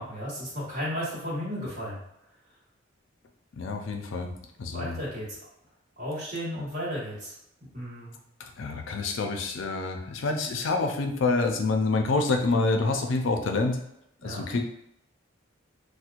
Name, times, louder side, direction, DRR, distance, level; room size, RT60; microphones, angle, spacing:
voice 1, 0.0-2.0 4.7-5.4 6.0-7.3 7.7-8.2 14.2-14.4, equal, 40° right, -6 dB, 1.3 m, -34 dB
voice 2, 3.6-4.3 4.6-5.0 8.6-13.8 14.2-14.6, left 3 dB, 70° left, 4 dB, 0.4 m, -27 dB
4.3 x 2.1 x 2.4 m, 0.80 s
head